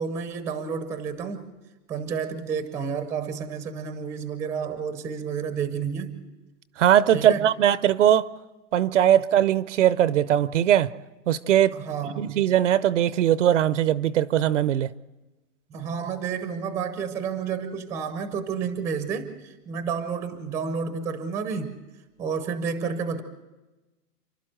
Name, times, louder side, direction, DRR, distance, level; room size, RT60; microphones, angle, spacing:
voice 1, 0.0-1.5 1.9-6.2 7.1-7.5 11.7-12.4 15.7-21.8 22.2-23.2, right 6 dB, 5° right, 0.6 m, -30 dB
voice 2, 6.8-8.3 8.7-10.9 11.3-11.7 12.2-14.9, right 11 dB, 50° right, 0.6 m, -20 dB
29.5 x 12.0 x 7.7 m
hypercardioid pair, 150°, 48 cm